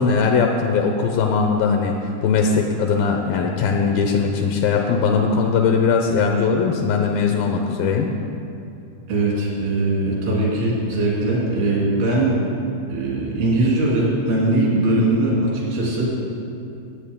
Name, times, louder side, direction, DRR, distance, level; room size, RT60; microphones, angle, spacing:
voice 1, 0.0-8.1, left 5 dB, 80° left, 3 dB, 2.3 m, -20 dB
voice 2, 9.1-12.4 12.9-16.1, right 2 dB, 80° right, -5 dB, 4.8 m, -20 dB
16.0 x 8.6 x 3.6 m, 2.6 s
omnidirectional pair, 4.5 m